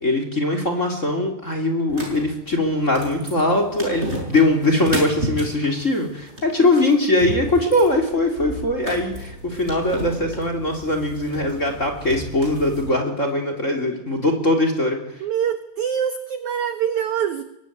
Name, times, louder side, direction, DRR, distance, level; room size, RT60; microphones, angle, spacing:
voice 1, 0.0-15.0, left 2 dB, 20° left, 5 dB, 2.9 m, -21 dB
sound 1, 1.9-12.9, right 1 dB, 15° right, 6.8 m, -34 dB
voice 2, 15.2-17.4, right 8 dB, 70° right, 9 dB, 1.9 m, -24 dB
23.0 x 22.5 x 9.4 m, 0.88 s
omnidirectional pair, 4.9 m